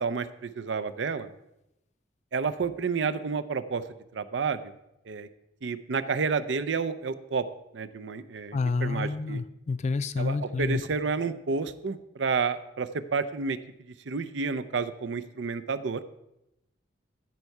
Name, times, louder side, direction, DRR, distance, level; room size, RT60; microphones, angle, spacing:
voice 1, 0.0-1.3 2.3-3.8 4.1-4.7 5.1-5.3 5.6-7.4 7.7-9.4 10.2-13.6 14.1-16.0, right 5 dB, 85° right, 13 dB, 0.6 m, -30 dB
voice 2, 8.5-10.8, left 4 dB, 40° left, 14 dB, 0.4 m, -29 dB
13.5 x 4.7 x 5.4 m, 0.86 s
head